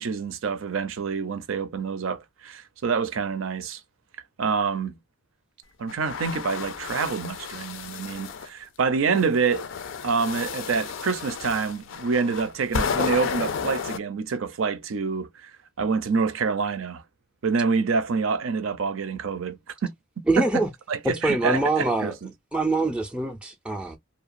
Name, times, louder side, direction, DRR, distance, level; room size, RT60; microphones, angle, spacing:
voice 1, 0.0-3.8 4.4-4.9 5.8-9.7 10.0-15.5 15.8-17.0 17.4-19.9 20.4-20.5 20.9-22.3, right 5 dB, 75° right, 0.5 m, -27 dB
sound 1, 5.9-8.5 9.1-14.0, left 6 dB, 70° left, 0.4 m, -32 dB
voice 2, 20.3-20.7 21.2-22.1 22.5-24.0, right 2 dB, 5° right, 0.4 m, -24 dB
2.8 x 2.2 x 2.4 m
head